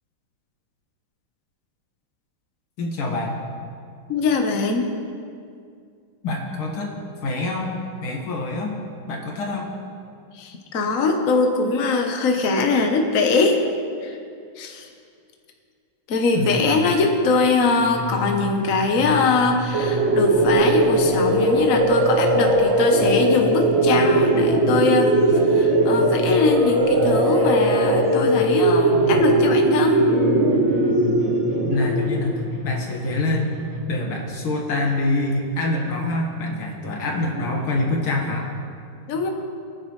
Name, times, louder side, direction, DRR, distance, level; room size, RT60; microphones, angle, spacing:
voice 1, 2.8-3.4 6.2-6.9 7.2-7.7 8.0-8.7 9.1-9.7 16.3-16.9 31.6-33.5 33.9-38.5, left 2 dB, 80° left, 0 dB, 2.5 m, -25 dB
voice 2, 4.1-4.9 10.3-13.6 14.0-14.2 14.6-14.9 16.1-30.0 39.1-39.3, left 3 dB, 50° left, 3 dB, 1.3 m, -22 dB
sound 1, 17.8-33.8, left 3 dB, 30° right, 3.2 m, -32 dB
sound 2, 19.7-32.5, right 2 dB, 50° right, 0.8 m, -19 dB
23.0 x 9.7 x 3.2 m, 2.3 s
omnidirectional pair, 2.3 m